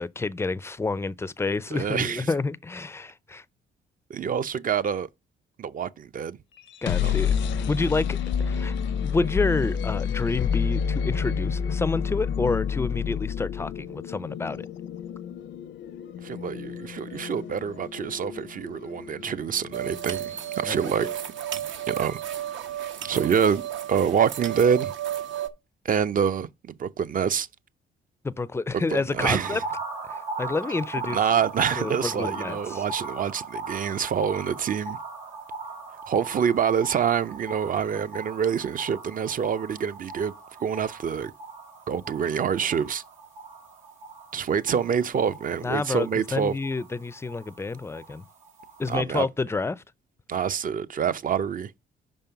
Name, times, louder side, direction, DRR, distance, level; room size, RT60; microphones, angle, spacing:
voice 1, 0.0-3.4 6.8-8.2 8.4-14.7 20.7-21.1 28.2-29.6 30.1-31.2 31.8-32.8 45.6-48.2 48.8-49.8, left 3 dB, 15° left, 0.4 m, -29 dB
voice 2, 1.7-2.3 4.1-5.1 5.6-6.4 7.0-7.2 16.2-21.1 21.9-22.2 22.8-24.9 25.8-27.5 28.7-29.6 31.1-35.0 36.1-40.3 40.6-41.3 41.9-43.0 44.3-46.6 48.9-49.3 50.3-51.7, right 7 dB, 45° right, 0.6 m, -26 dB
sound 1, 6.6-20.4, left 7 dB, 70° left, 0.6 m, -29 dB
sound 2, 19.7-25.5, right 11 dB, 70° right, 0.9 m, -33 dB
sound 3, 29.2-48.9, right 3 dB, 90° right, 2.3 m, -39 dB
5.3 x 5.2 x 5.7 m
cardioid pair, 90°, 20 cm